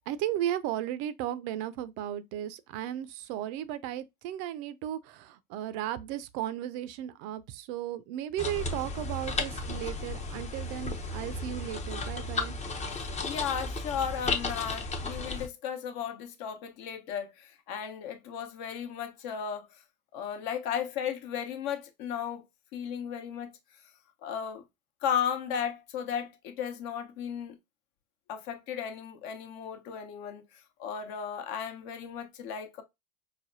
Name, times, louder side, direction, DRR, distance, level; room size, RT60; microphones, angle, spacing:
voice 1, 0.1-12.6, right 12 dB, 55° right, 0.5 m, -35 dB
sound 1, 8.4-15.5, left 3 dB, 15° left, 0.5 m, -34 dB
voice 2, 13.2-19.7 20.1-22.4 22.7-23.6 24.2-24.6 25.0-27.6 28.3-30.4 30.8-32.8, left 8 dB, 55° left, 0.9 m, -35 dB
4.8 x 2.2 x 2.5 m
hypercardioid pair, 90°, 42 cm